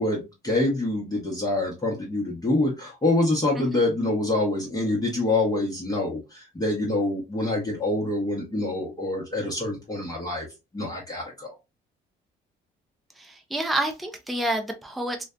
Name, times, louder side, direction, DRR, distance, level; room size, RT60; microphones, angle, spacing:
voice 1, 0.0-10.5 10.7-11.5, left 2 dB, 20° left, -3 dB, 0.9 m, -26 dB
voice 2, 13.2-15.2, right 1 dB, ahead, 4 dB, 0.5 m, -28 dB
2.5 x 2.2 x 2.3 m, 0.25 s
cardioid pair, 90°, 20 cm